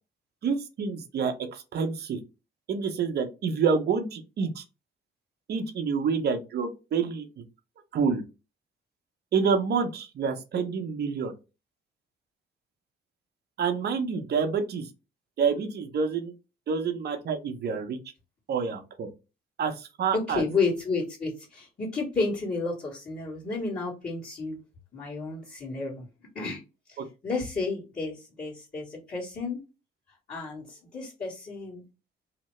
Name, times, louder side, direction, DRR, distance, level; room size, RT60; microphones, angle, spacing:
voice 1, 0.4-2.2 2.7-4.6 5.5-7.3 7.9-8.2 9.3-11.3 13.6-14.9 15.4-16.3 16.7-18.0 18.5-19.1 19.6-20.4 27.0-27.1, right 5 dB, 55° right, 6 dB, 0.7 m, -28 dB
voice 2, 20.1-24.6 24.9-26.0 26.3-26.6 27.2-29.6 30.3-31.8, left 3 dB, 40° left, -8 dB, 1.4 m, -31 dB
2.8 x 2.1 x 3.1 m, 0.28 s
cardioid pair, 90°, 20 cm